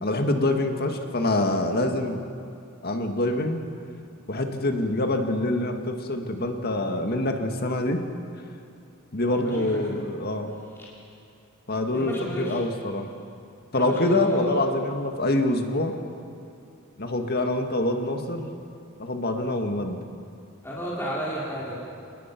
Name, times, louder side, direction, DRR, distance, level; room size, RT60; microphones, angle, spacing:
voice 1, 0.0-2.2 2.8-3.6 4.3-8.0 9.1-10.5 11.7-13.1 13.7-15.9 17.0-18.5 19.0-20.0, left 1 dB, 45° left, 5 dB, 1.9 m, -25 dB
voice 2, 9.4-9.9 11.9-12.6 13.7-14.5 20.6-21.8, equal, 10° left, -6 dB, 3.9 m, -32 dB
28.0 x 20.0 x 6.0 m, 2.6 s
head